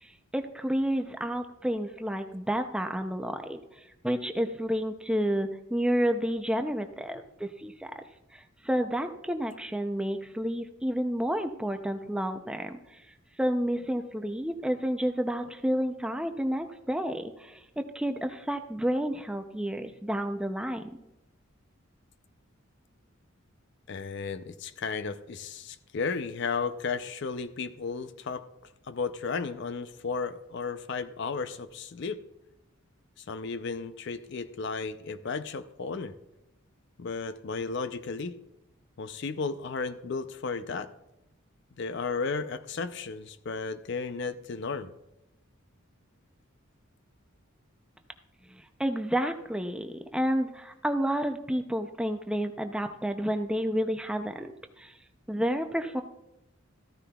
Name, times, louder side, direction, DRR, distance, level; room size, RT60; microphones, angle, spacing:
voice 1, 0.0-3.6 4.0-8.0 8.3-12.8 13.4-20.8 48.8-54.5 54.8-54.9 55.3-56.0, equal, 5° right, 6 dB, 0.4 m, -30 dB
voice 2, 23.9-28.4 28.9-32.2 33.2-36.1 37.0-38.4 39.0-40.9 41.8-44.9, left 4 dB, 55° left, 12 dB, 0.5 m, -34 dB
14.0 x 13.5 x 2.3 m, 0.91 s
head